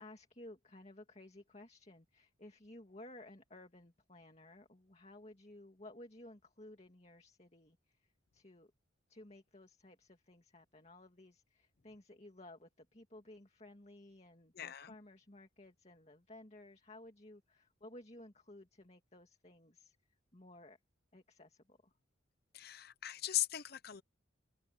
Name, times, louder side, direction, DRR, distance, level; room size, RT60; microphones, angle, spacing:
voice 1, 0.0-8.7 9.1-20.0 20.3-20.8 21.1-21.9, left 1 dB, 35° left, 2.2 m, -56 dB
voice 2, 14.5-14.9 22.5-24.0, left 14 dB, 50° left, 0.7 m, -38 dB
head